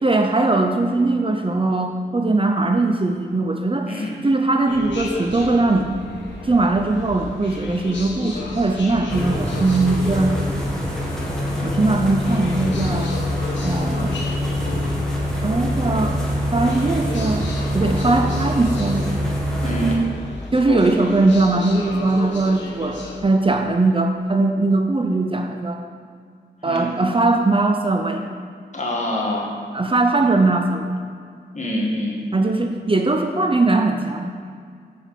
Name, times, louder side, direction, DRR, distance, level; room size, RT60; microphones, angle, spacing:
voice 1, 0.0-3.9 4.2-5.9 6.4-10.3 11.6-13.2 13.6-14.2 15.4-16.2 16.5-17.5 17.7-19.0 20.5-25.8 26.6-28.3 29.7-31.0 32.3-34.3, right 2 dB, 30° right, 4 dB, 0.7 m, -20 dB
voice 2, 3.9-4.2 19.6-20.1 20.7-20.8 26.6-26.9 28.7-29.5 31.5-32.2, equal, 40° left, -3 dB, 2.1 m, -25 dB
sound 1, 4.6-23.2, left 2 dB, 85° left, 1.3 m, -34 dB
sound 2, 9.1-19.9, equal, 5° left, 2.1 m, -24 dB
7.1 x 5.1 x 6.7 m, 2.1 s
cardioid pair, 45°, 19 cm